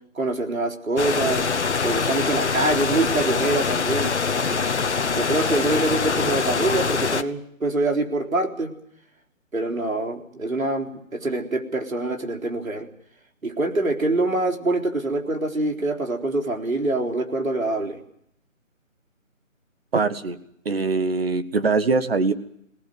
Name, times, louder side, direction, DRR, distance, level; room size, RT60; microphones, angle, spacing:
voice 1, 0.1-1.5 1.8-4.1 4.5-8.7 9.5-12.9 13.4-18.0, right 2 dB, 80° right, 3 dB, 4.1 m, -25 dB
sound 1, 1.0-7.2, left 5 dB, 55° left, 1.3 m, -24 dB
voice 2, 19.9-20.4 20.6-22.3, right 4 dB, 45° right, 10 dB, 1.7 m, -22 dB
22.0 x 18.5 x 9.5 m, 0.71 s
figure-of-eight pair, 165°, 40 cm